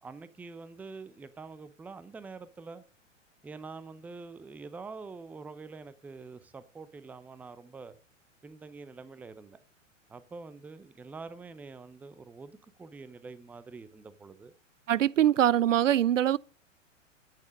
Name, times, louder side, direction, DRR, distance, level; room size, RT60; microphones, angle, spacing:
voice 1, 0.0-2.8 3.4-8.0 8.4-9.6 10.1-14.5 15.2-15.3, right 4 dB, 5° right, 0.5 m, -46 dB
voice 2, 14.9-16.4, right 11 dB, 75° right, 0.5 m, -23 dB
12.0 x 9.3 x 5.3 m
figure-of-eight pair, 105°, 39 cm